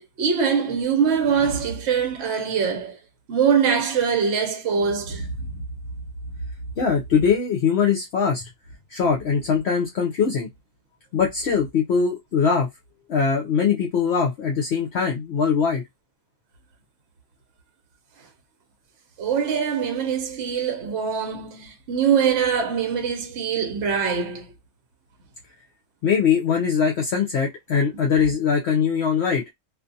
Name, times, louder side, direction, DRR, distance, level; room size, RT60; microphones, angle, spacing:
voice 1, 0.0-3.0 3.3-5.6 19.2-24.5, right 6 dB, 65° right, 0.9 m, -23 dB
voice 2, 6.8-8.4 8.9-10.5 11.1-12.7 13.1-15.8 26.0-29.4, left 6 dB, 65° left, 0.8 m, -21 dB
2.5 x 2.4 x 2.6 m
omnidirectional pair, 1.3 m